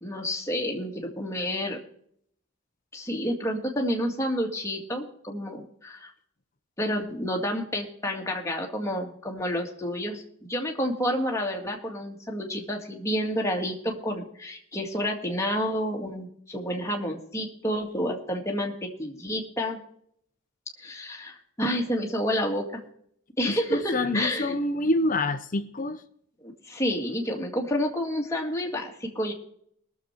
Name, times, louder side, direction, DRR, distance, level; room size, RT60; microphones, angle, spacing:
voice 1, 0.0-1.8 2.9-6.1 6.8-19.8 20.8-22.8 23.4-24.6 26.4-29.3, equal, 15° left, 0 dB, 2.0 m, -29 dB
voice 2, 23.5-26.0, left 2 dB, 35° left, 10 dB, 0.8 m, -27 dB
21.5 x 7.2 x 4.5 m, 0.66 s
head